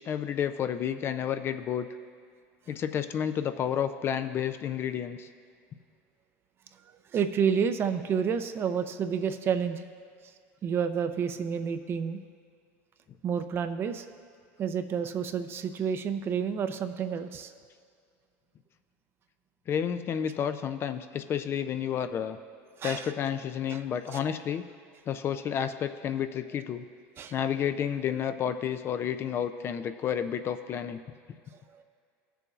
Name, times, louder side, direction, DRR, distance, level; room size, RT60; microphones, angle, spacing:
voice 1, 0.0-1.9 2.7-5.3 19.7-22.4 22.8-24.6 25.1-26.8 27.3-31.0, left 8 dB, 35° left, 10 dB, 0.4 m, -30 dB
voice 2, 7.1-9.8 10.6-12.2 13.2-14.1 14.6-17.5 22.8-23.1 23.7-23.8 24.1-24.2 27.2-27.3 31.7-31.8, right 7 dB, 35° right, 9 dB, 0.5 m, -29 dB
17.5 x 6.8 x 2.4 m, 2.2 s
supercardioid pair, 125°, 7 cm